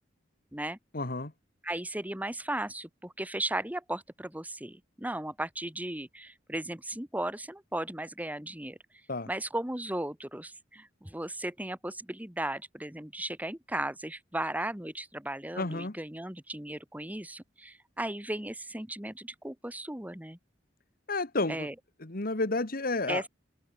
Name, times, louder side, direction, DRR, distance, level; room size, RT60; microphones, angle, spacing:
voice 1, 0.9-1.3 9.1-9.3 15.6-16.0 21.1-21.7 22.0-23.2, left 2 dB, 50° left, 1.9 m, -31 dB
voice 2, 1.6-8.8 9.3-20.4 21.5-21.7 23.1-23.3, right 1 dB, 10° right, 1.7 m, -36 dB
head